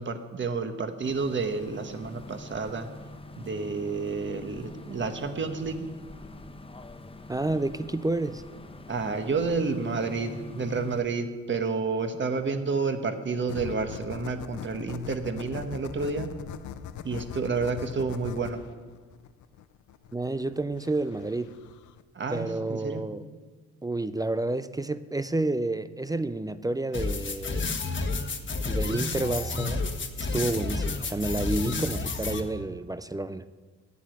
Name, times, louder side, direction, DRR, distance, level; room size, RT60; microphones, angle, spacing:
voice 1, 0.0-2.9 3.4-5.9 8.9-16.3 17.0-18.6 22.1-23.0, right 4 dB, 40° right, 7 dB, 1.4 m, -30 dB
sound 1, 1.0-11.0, left 2 dB, 20° left, 0.9 m, -44 dB
voice 2, 7.3-8.4 20.1-21.5 22.3-23.2 23.8-27.7 28.6-29.8 30.2-33.4, right 2 dB, 10° right, 13 dB, 0.5 m, -30 dB
sound 2, 13.5-22.0, left 9 dB, 75° left, 0.7 m, -42 dB
sound 3, 26.9-32.4, left 3 dB, 40° left, 1.4 m, -30 dB
9.9 x 8.4 x 9.3 m, 1.4 s
cardioid pair, 90°, 30 cm